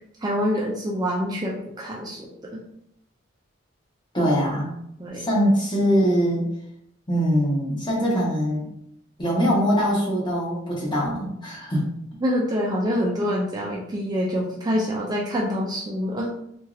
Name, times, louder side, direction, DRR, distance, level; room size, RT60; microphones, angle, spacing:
voice 1, 0.2-2.6 5.0-5.3 12.2-16.3, equal, 20° right, -3 dB, 0.3 m, -26 dB
voice 2, 4.1-4.7 5.2-6.4 7.1-8.6 9.2-11.9, equal, 25° left, -5 dB, 1.0 m, -22 dB
2.9 x 2.7 x 2.5 m, 0.75 s
head